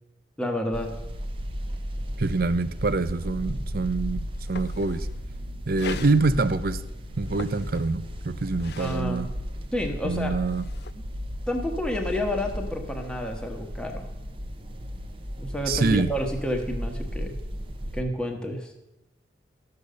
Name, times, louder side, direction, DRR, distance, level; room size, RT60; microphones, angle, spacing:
voice 1, 0.4-0.9 8.8-9.2 9.7-10.3 11.5-14.0 15.4-17.3 17.9-18.7, left 1 dB, 5° left, 2 dB, 1.2 m, -30 dB
sound 1, 0.7-18.0, equal, 30° right, 0.9 m, -35 dB
voice 2, 2.2-5.1 5.7-6.8 7.2-9.3 10.0-10.7 15.7-16.1, right 3 dB, 50° right, 14 dB, 0.5 m, -25 dB
sound 2, 4.3-5.2 5.7-6.2 7.2-8.1 8.5-9.1 10.2-10.9, left 6 dB, 60° left, 0.4 m, -40 dB
12.5 x 6.7 x 6.6 m, 0.96 s
head